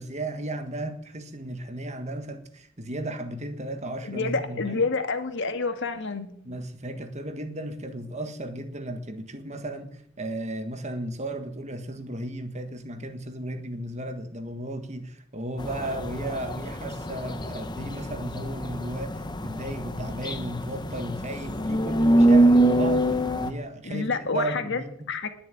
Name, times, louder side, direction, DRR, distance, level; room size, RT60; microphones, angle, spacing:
voice 1, 0.0-4.9 6.4-25.1, right 1 dB, 30° right, 1.7 m, -35 dB
voice 2, 4.0-6.4 23.8-24.8 25.1-25.3, left 4 dB, 55° left, 1.7 m, -28 dB
sound 1, 15.6-23.5, right 1 dB, 20° left, 1.0 m, -24 dB
20.0 x 7.3 x 9.1 m
head